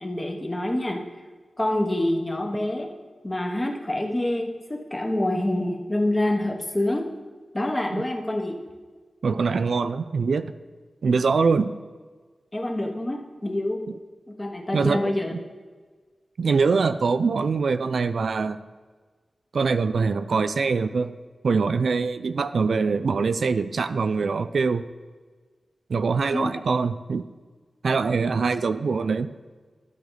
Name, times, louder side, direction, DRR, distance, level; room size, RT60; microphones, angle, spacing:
voice 1, 0.0-1.0 1.6-2.9 3.2-7.1 7.5-8.5 12.5-13.8 14.4-15.4 26.3-26.5, left 1 dB, 20° left, 2 dB, 1.1 m, -26 dB
voice 2, 9.2-10.5 11.0-11.7 14.7-15.0 16.4-18.6 19.5-21.1 21.4-24.8 25.9-27.2 27.8-29.3, right 4 dB, 75° right, 11 dB, 0.4 m, -23 dB
12.5 x 6.6 x 4.0 m, 1.4 s
wide cardioid pair, 125°, 0 cm